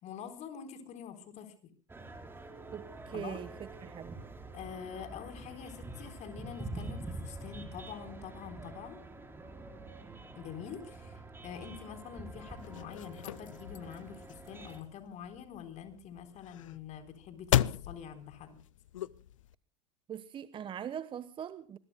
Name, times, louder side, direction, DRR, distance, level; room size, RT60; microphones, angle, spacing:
voice 1, 0.0-1.5 3.1-3.4 4.5-9.0 10.3-18.6, left 8 dB, 40° left, 8 dB, 4.0 m, -46 dB
sound 1, 1.9-14.8, right 2 dB, 15° right, 4.4 m, -46 dB
voice 2, 2.7-4.2 20.1-21.8, right 9 dB, 30° right, 15 dB, 1.1 m, -41 dB
sound 2, 12.5-19.5, left 12 dB, 70° left, 0.6 m, -36 dB
26.0 x 21.5 x 2.2 m, 0.41 s
figure-of-eight pair, 80°, 17 cm